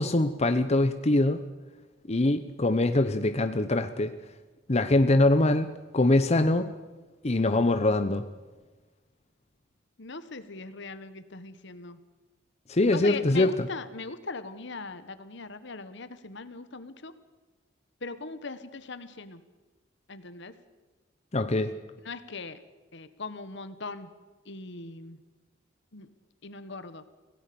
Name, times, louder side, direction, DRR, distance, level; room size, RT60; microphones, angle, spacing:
voice 1, 0.0-1.4 2.1-4.1 4.7-6.7 7.2-8.3 12.7-13.7 21.3-21.7, left 2 dB, 35° left, 9 dB, 0.9 m, -23 dB
voice 2, 10.0-12.0 12.9-17.1 18.0-19.4 20.1-20.5 22.0-22.6 22.9-24.1 24.5-25.2 25.9-26.1 26.4-27.0, left 3 dB, 65° left, 12 dB, 1.4 m, -40 dB
25.0 x 17.5 x 7.0 m, 1.2 s
head